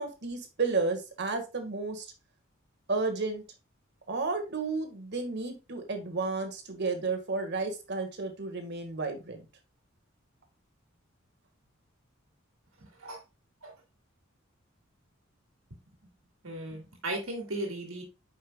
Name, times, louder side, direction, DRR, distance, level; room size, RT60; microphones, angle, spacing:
voice 1, 0.0-2.1 2.9-3.4 4.1-9.4, right 3 dB, 55° right, 6 dB, 1.8 m, -32 dB
voice 2, 12.8-13.2 13.6-13.7 16.4-18.0, right 1 dB, 85° right, 2 dB, 2.1 m, -36 dB
8.7 x 5.6 x 2.4 m, 0.27 s
head